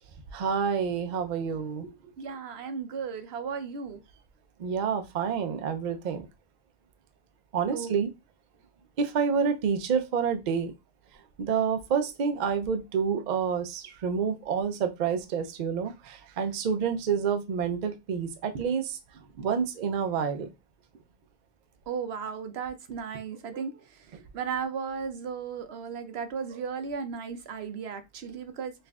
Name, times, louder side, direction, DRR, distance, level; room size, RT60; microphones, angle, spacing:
voice 1, 0.3-1.9 4.6-6.3 7.5-8.1 9.0-10.7 11.4-19.0 19.4-20.5, right 6 dB, 55° right, 0.6 m, -28 dB
voice 2, 2.2-4.0 7.7-8.1 18.5-18.6 19.3-19.5 21.9-24.0 24.3-28.7, right 6 dB, 80° right, 0.9 m, -35 dB
5.4 x 2.5 x 2.3 m
omnidirectional pair, 1.0 m